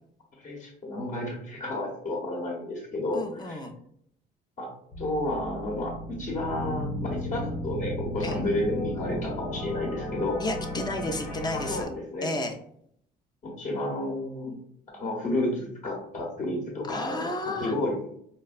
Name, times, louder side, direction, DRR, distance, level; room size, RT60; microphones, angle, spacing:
voice 1, 0.4-3.6 4.6-4.7 5.0-10.4 11.5-12.3 13.4-14.6 14.9-17.3 17.6-18.0, left 1 dB, 45° left, -2 dB, 0.9 m, -31 dB
voice 2, 3.1-3.7 8.2-8.4 10.4-11.9 12.2-12.5 16.9-17.7, left 2 dB, 25° left, 5 dB, 0.5 m, -32 dB
sound 1, 4.9-11.8, left 1 dB, 75° left, 1.0 m, -34 dB
4.2 x 2.2 x 2.4 m, 0.68 s
cardioid pair, 110°, 17 cm